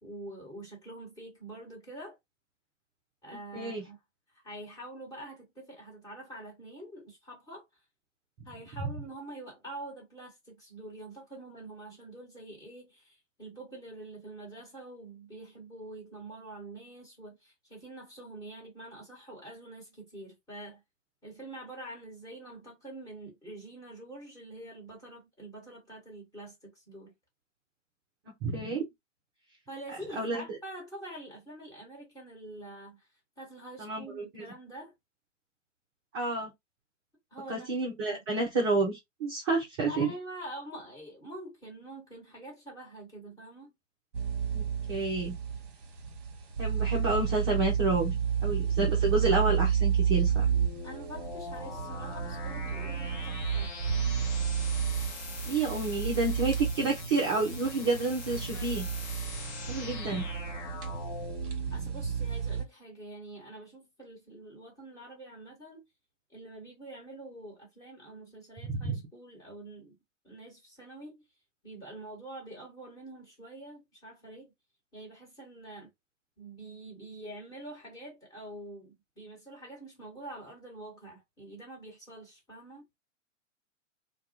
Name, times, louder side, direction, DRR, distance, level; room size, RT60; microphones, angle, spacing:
voice 1, 0.0-2.2 3.2-4.0 4.3-7.6 8.4-20.8 21.2-27.1 29.7-33.1 33.4-34.9 37.3-37.7 38.0-38.2 39.9-43.7 50.8-53.8 58.3-58.9 61.7-65.8 66.3-69.9 70.2-71.2 71.6-74.5 74.9-75.9 76.4-82.9, right 1 dB, 10° left, 1.2 m, -46 dB
voice 2, 3.5-3.8 28.4-28.8 30.1-30.4 33.8-34.4 36.1-36.5 37.5-40.1 44.5-45.4 46.6-50.5 55.5-58.9 59.7-60.3 68.7-69.0, right 3 dB, 20° right, 0.5 m, -30 dB
sound 1, 44.1-62.6, right 7 dB, 45° right, 0.8 m, -31 dB
sound 2, 50.2-62.1, left 4 dB, 35° left, 0.8 m, -43 dB
2.2 x 2.1 x 2.7 m
figure-of-eight pair, 115°, 38 cm